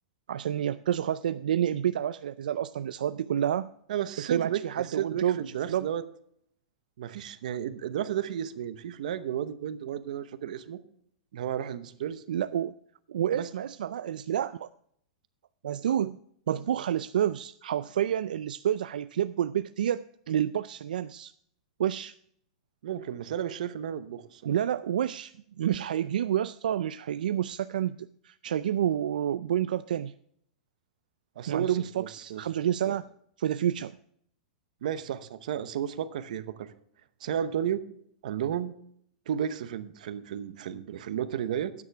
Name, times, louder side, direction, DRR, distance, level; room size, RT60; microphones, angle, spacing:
voice 1, 0.3-3.7 4.2-5.4 5.7-5.9 12.3-12.8 13.1-14.7 15.6-16.2 16.5-21.3 21.8-22.1 24.4-30.1 31.5-33.1 33.4-33.9, right 10 dB, 85° right, 13 dB, 0.4 m, -29 dB
voice 2, 3.9-6.0 7.0-10.8 11.3-12.2 13.3-13.5 22.8-24.4 31.4-32.4 32.9-33.0 34.8-36.7 37.2-37.8 38.2-38.7 39.3-41.7, right 9 dB, 65° right, 13 dB, 0.9 m, -33 dB
12.5 x 9.5 x 3.4 m, 0.68 s
supercardioid pair, 160°, 4 cm